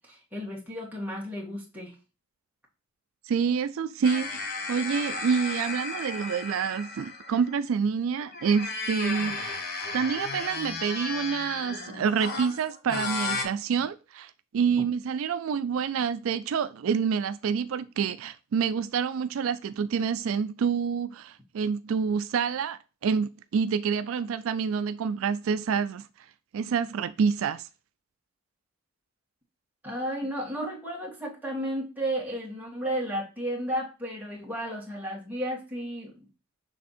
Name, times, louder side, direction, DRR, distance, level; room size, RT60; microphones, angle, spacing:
voice 1, 0.1-1.9 29.8-36.1, equal, 10° right, 1.7 m, -33 dB
voice 2, 3.2-9.6 9.9-26.1 26.5-27.7, right 6 dB, 75° right, 0.3 m, -27 dB
sound 1, 4.0-7.6 8.2-13.5, left 3 dB, 45° left, 1.1 m, -34 dB
6.4 x 3.5 x 4.2 m
head